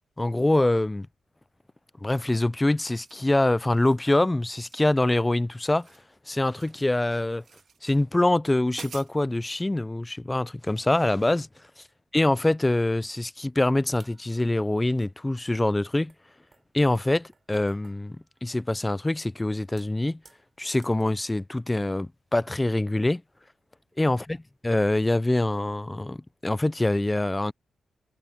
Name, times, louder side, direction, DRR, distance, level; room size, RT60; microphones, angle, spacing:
voice 1, 0.2-1.1 2.0-5.9 6.3-7.4 7.8-11.5 12.1-16.1 16.7-20.2 20.6-23.2 24.0-24.2 24.6-27.5, left 1 dB, 15° left, 0.5 m, -24 dB
sound 1, 2.0-2.4 2.8-3.3 3.6-4.0 4.7-5.3 5.6-6.8 7.4-7.8 8.3-8.4 8.7-9.6, right 6 dB, 70° right, 2.3 m, -48 dB
sound 2, 14.0-14.6 15.5-15.6 16.1-19.1 19.6-21.2 21.7-21.9 22.3-22.4 23.4-24.1 24.4-24.6 25.4-25.5, right 4 dB, 40° right, 7.1 m, -60 dB
cardioid pair, 70°, 0 cm